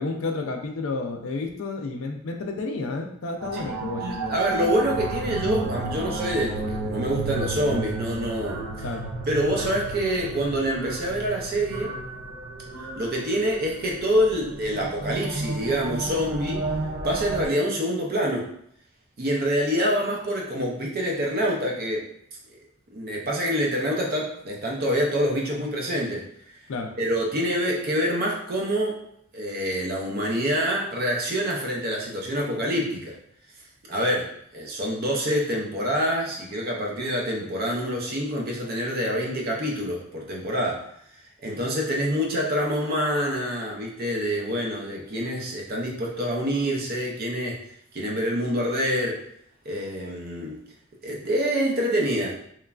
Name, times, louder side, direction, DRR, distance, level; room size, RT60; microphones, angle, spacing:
voice 1, 0.0-4.4 8.8-9.0 26.7-26.9, left 3 dB, 65° left, 4 dB, 0.4 m, -31 dB
sound 1, 3.4-17.5, right 3 dB, 90° right, 0.7 m, -32 dB
voice 2, 4.0-8.6 9.3-12.0 13.0-16.7 17.0-18.5 19.2-22.1 22.9-26.3 27.0-29.0 29.3-33.1 33.9-34.3 34.5-40.9 41.4-47.6 47.9-49.2 49.7-50.6 51.0-52.3, equal, 45° right, -1 dB, 0.5 m, -26 dB
3.0 x 2.3 x 2.3 m, 0.69 s
head